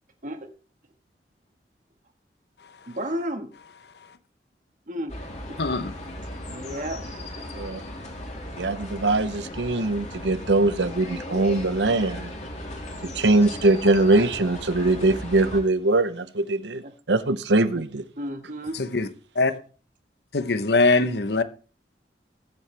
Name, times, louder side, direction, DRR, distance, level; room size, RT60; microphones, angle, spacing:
voice 1, 2.9-3.5 4.9-5.2 5.5-5.6 6.5-7.0 16.8-16.9 18.2-18.8, equal, 45° right, 1.8 m, -32 dB
sound 1, 5.1-15.6, left 1 dB, 40° left, 3.2 m, -37 dB
voice 2, 5.6-6.0 18.7-19.1 19.3-19.5 20.3-21.4, left 3 dB, 65° left, 0.9 m, -22 dB
voice 3, 8.6-12.3 13.0-16.8 17.1-18.0, right 2 dB, 80° right, 0.8 m, -22 dB
21.5 x 7.7 x 3.4 m
head